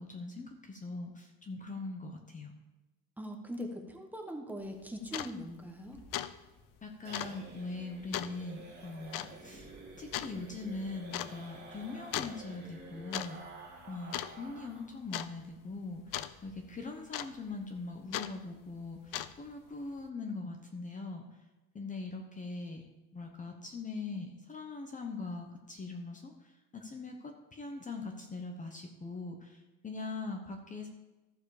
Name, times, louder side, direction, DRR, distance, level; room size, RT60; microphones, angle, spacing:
voice 1, 0.0-2.5 6.8-9.7 10.0-13.4 13.9-16.0 16.4-19.0 19.4-21.2 21.7-22.8 23.1-26.3 26.7-27.2 27.5-29.6 29.8-30.9, left 3 dB, 25° left, 3 dB, 0.9 m, -41 dB
voice 2, 3.2-6.0, equal, 5° right, 2 dB, 1.1 m, -41 dB
sound 1, 4.6-4.7 5.1-5.3 5.7-5.9 6.1-6.3 6.6-6.7 7.1-7.4 8.1-8.4 9.1-9.3 10.1-10.3 11.1-11.3 12.1-12.4 12.9-13.3 13.6-13.8 14.1-14.6 15.1-15.3 16.1-16.3 17.1-17.5 18.1-18.3 19.0-19.5, left 13 dB, 80° left, 0.6 m, -37 dB
sound 2, 5.8-14.9 15.2-15.3 15.6-15.7 16.1-16.5, right 3 dB, 30° right, 2.2 m, -50 dB
14.0 x 4.8 x 4.9 m, 1.1 s
cardioid pair, 145°, 33 cm